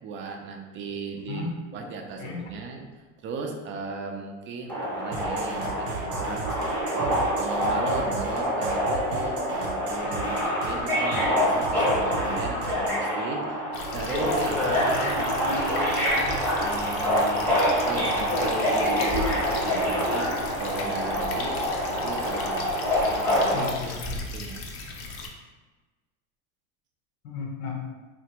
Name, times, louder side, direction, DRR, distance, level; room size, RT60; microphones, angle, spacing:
voice 1, 0.0-1.4 1.7-2.8 3.2-6.5 6.9-23.9 24.3-24.7 25.0-25.3, right 4 dB, 30° right, 2 dB, 0.4 m, -36 dB
voice 2, 1.3-1.8 2.2-2.5 23.5-24.3 27.2-27.9, left 4 dB, 70° left, 0 dB, 0.8 m, -34 dB
Subway metro underground, 4.7-23.7, equal, 5° left, 0.8 m, -26 dB
sound 1, 5.1-13.1, right 5 dB, 85° right, 0.7 m, -37 dB
sound 2, 13.7-25.3, left 3 dB, 35° left, 0.5 m, -37 dB
3.3 x 2.5 x 2.9 m, 1.3 s
supercardioid pair, 120°, 40 cm